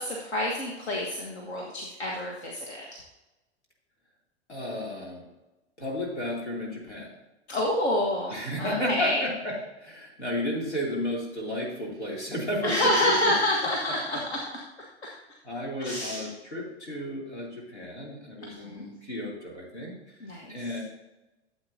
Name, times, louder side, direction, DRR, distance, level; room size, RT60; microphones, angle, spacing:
voice 1, 0.0-3.0 7.5-9.2 12.6-14.4 15.0-15.1 15.8-16.3 18.5-18.8 20.2-20.6, left 1 dB, 70° left, -1 dB, 1.6 m, -28 dB
voice 2, 4.5-5.2 5.8-7.1 8.3-12.7 13.0-13.3 14.1-14.2 15.4-20.2 20.5-20.8, left 1 dB, 85° left, -2 dB, 3.1 m, -33 dB
13.0 x 7.9 x 2.8 m, 1.0 s
figure-of-eight pair, 95°, 33 cm